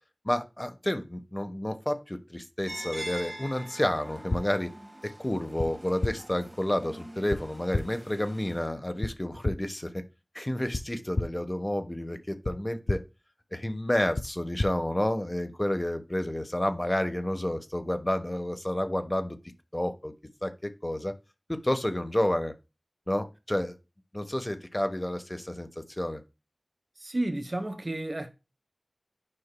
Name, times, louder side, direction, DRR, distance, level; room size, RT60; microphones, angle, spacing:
voice 1, 0.2-4.7 5.0-10.0 10.3-13.0 13.5-19.4 19.7-20.1 20.4-21.1 21.5-22.5 23.1-23.8 24.1-26.2, left 1 dB, 30° left, 1.2 m, -30 dB
sound 1, 2.7-8.7, right 1 dB, 25° right, 1.7 m, -44 dB
sound 2, 4.3-4.4 5.6-5.7 6.0-6.1 7.3-7.4 7.7-7.8 9.0-9.1 9.4-9.5 10.7-10.8 11.1-11.3 12.4-12.5 12.9-13.0 14.1-14.3 14.6-14.7, left 2 dB, 75° left, 0.5 m, -28 dB
voice 2, 27.0-28.3, right 1 dB, 50° right, 1.1 m, -31 dB
10.0 x 5.6 x 2.2 m
wide cardioid pair, 45°, 0 cm